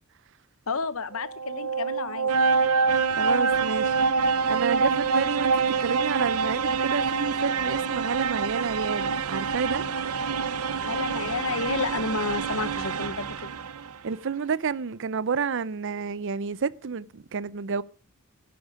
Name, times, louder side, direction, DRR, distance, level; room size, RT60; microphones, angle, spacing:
voice 1, 0.7-2.4 10.8-13.5, left 4 dB, 65° left, 1.0 m, -31 dB
sound 1, 1.1-13.9, right 5 dB, 85° right, 0.8 m, -26 dB
voice 2, 3.2-3.9 4.5-9.8 14.0-17.8, right 5 dB, 55° right, 0.5 m, -29 dB
13.0 x 11.0 x 4.9 m
head